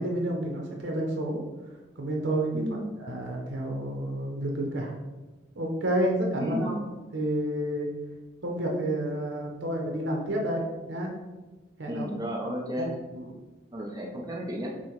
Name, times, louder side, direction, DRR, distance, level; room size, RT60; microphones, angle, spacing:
voice 1, 0.0-1.4 2.0-2.6 3.0-4.9 5.6-6.7 7.1-7.9 8.4-11.1 11.8-12.0 12.8-12.9 13.2-13.3, right 1 dB, 90° right, 1 dB, 0.7 m, -29 dB
voice 2, 2.5-2.8 6.4-6.8 11.9-12.9 13.7-14.7, equal, 20° right, -1 dB, 0.6 m, -33 dB
6.1 x 2.1 x 3.1 m, 1.2 s
head